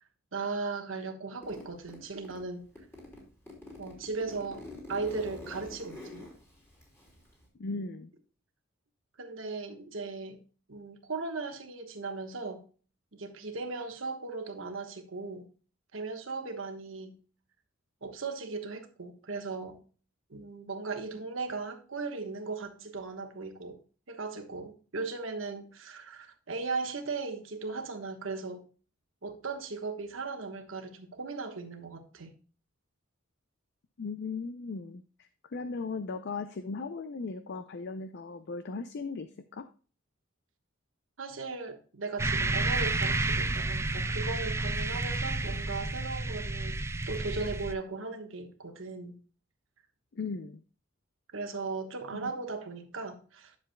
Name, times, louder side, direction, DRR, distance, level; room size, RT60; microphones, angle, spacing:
voice 1, 0.3-2.6 3.8-6.3 9.2-10.4 10.7-12.6 13.1-15.5 15.9-17.2 18.0-19.8 20.3-23.8 24.1-28.6 29.2-32.3 41.2-46.8 47.1-49.2 51.3-53.6, right 4 dB, 75° right, 7 dB, 1.2 m, -37 dB
Zipper (clothing), 1.4-2.4 2.8-7.5, left 1 dB, 15° left, 3.0 m, -46 dB
voice 2, 7.6-8.1 34.0-39.7 50.1-50.6 52.1-52.3, left 4 dB, 60° left, 11 dB, 0.5 m, -37 dB
sound 1, 42.2-47.7, right 2 dB, 15° right, 0.4 m, -30 dB
10.5 x 7.0 x 2.2 m, 0.38 s
head